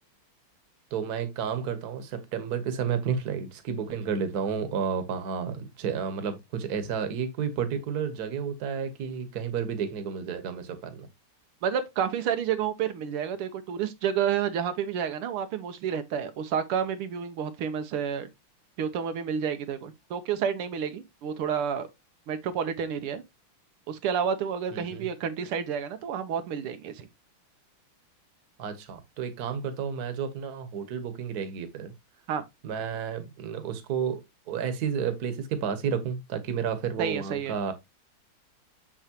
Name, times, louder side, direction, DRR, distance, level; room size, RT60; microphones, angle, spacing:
voice 1, 0.9-11.1 24.7-25.1 28.6-31.9 32.6-37.7, right 7 dB, 50° right, 1.5 m, -31 dB
voice 2, 11.6-18.3 18.8-21.9 22.3-23.2 23.9-27.1 32.3-32.4 37.0-37.6, right 8 dB, 85° right, 1.8 m, -30 dB
7.1 x 6.5 x 2.8 m
omnidirectional pair, 2.4 m